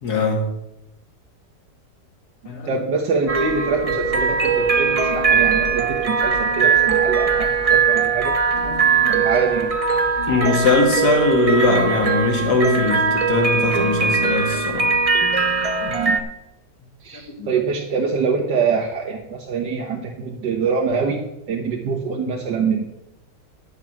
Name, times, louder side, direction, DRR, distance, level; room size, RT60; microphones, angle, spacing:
voice 1, 0.0-0.5 2.5-2.7 8.5-9.1 10.3-14.9 17.4-17.5, left 3 dB, 65° left, 2.4 m, -20 dB
voice 2, 2.7-8.4 9.1-9.7 15.8-16.2 17.0-21.2 21.5-22.8, right 5 dB, 85° right, 1.9 m, -24 dB
sound 1, 3.3-16.2, right 5 dB, 30° right, 0.8 m, -20 dB
10.5 x 7.3 x 6.1 m
omnidirectional pair, 1.9 m